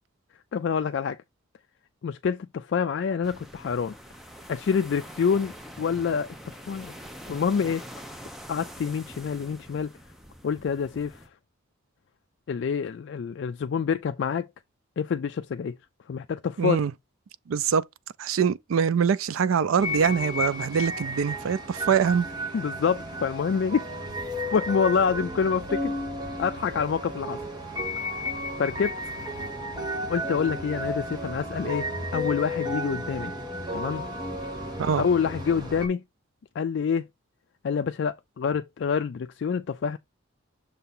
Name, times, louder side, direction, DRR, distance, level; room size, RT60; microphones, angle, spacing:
voice 1, 0.5-1.2 2.0-3.9 4.5-6.9 7.3-7.8 8.5-9.9 10.4-11.2 12.5-14.5 15.0-15.7 16.1-16.8 22.5-23.9 24.5-25.9 26.4-27.4 28.6-29.1 30.1-33.3 33.7-34.0 35.0-36.0 36.6-37.1 37.6-40.0, left 6 dB, 60° left, 0.3 m, -27 dB
sound 1, 3.2-11.3, equal, ahead, 0.6 m, -44 dB
voice 2, 16.6-16.9 17.5-17.8 18.2-22.3 34.8-35.1, right 7 dB, 85° right, 0.4 m, -24 dB
sound 2, 19.8-35.9, left 1 dB, 20° right, 1.3 m, -33 dB
6.7 x 2.8 x 5.4 m
head